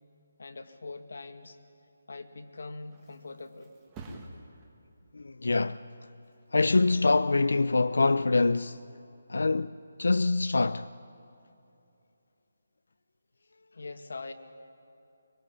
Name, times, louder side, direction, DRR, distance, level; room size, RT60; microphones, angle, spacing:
voice 1, 0.4-1.6 2.1-3.7 13.7-14.3, left 3 dB, 65° left, 2.1 m, -42 dB
Thump thud, 2.5-9.8 10.2-10.7, right 2 dB, 10° right, 1.7 m, -53 dB
voice 2, 5.1-5.8 6.5-8.8 9.3-10.9, left 3 dB, 85° left, 0.6 m, -25 dB
24.0 x 23.5 x 9.9 m
hypercardioid pair, 180°, 0 cm